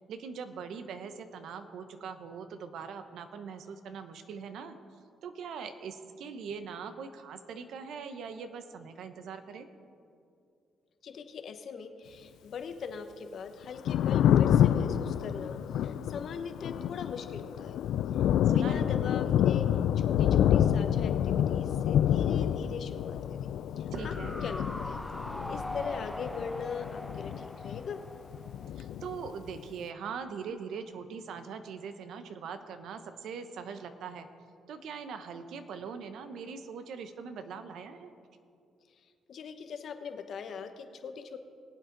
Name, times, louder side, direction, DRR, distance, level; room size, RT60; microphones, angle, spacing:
voice 1, 0.1-4.8 5.2-9.7 18.4-19.0 23.9-24.4 28.8-34.3 34.7-38.1, right 6 dB, 75° right, 9 dB, 0.9 m, -41 dB
voice 2, 11.0-17.7 18.5-19.7 19.9-23.4 23.8-24.1 24.4-25.0 25.5-28.0 39.3-41.4, left 6 dB, 60° left, 8 dB, 1.0 m, -40 dB
Thunder, 13.6-28.1 28.3-29.6, left 10 dB, 80° left, 0.3 m, -28 dB
sound 1, 23.9-29.2 29.5-29.6, left 1 dB, 5° left, 0.4 m, -41 dB
21.5 x 8.2 x 3.9 m, 2.4 s
cardioid pair, 90°, 0 cm